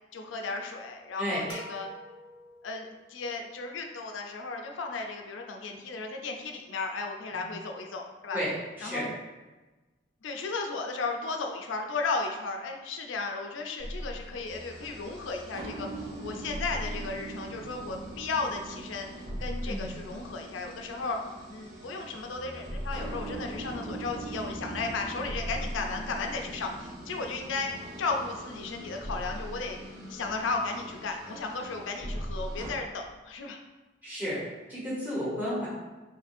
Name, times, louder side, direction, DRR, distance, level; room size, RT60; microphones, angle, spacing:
voice 1, 0.1-1.9 2.6-8.4 8.8-9.1 10.2-15.9 16.2-19.1 19.4-21.2 21.5-27.7 28.0-33.6, left 3 dB, 90° left, 3 dB, 0.4 m, -35 dB
sound 1, 1.5-3.2, equal, 90° right, 0.6 m, -47 dB
voice 2, 8.8-9.1 19.6-19.9 34.0-34.4 34.7-35.7, equal, 10° right, -9 dB, 1.2 m, -32 dB
sound 2, 13.8-32.7, right 1 dB, 65° right, 1.2 m, -40 dB
3.2 x 2.6 x 4.1 m, 1.2 s
head